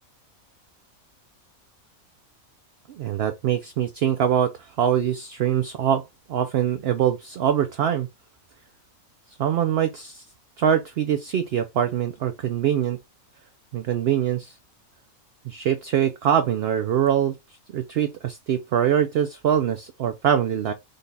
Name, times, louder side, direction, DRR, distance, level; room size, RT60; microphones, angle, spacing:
voice 1, 2.9-6.0 6.3-8.1 9.4-10.2 10.6-13.0 13.7-14.6 15.4-17.4 17.7-20.7, right 9 dB, 65° right, 0.6 m, -23 dB
5.2 x 2.4 x 3.9 m
omnidirectional pair, 1.5 m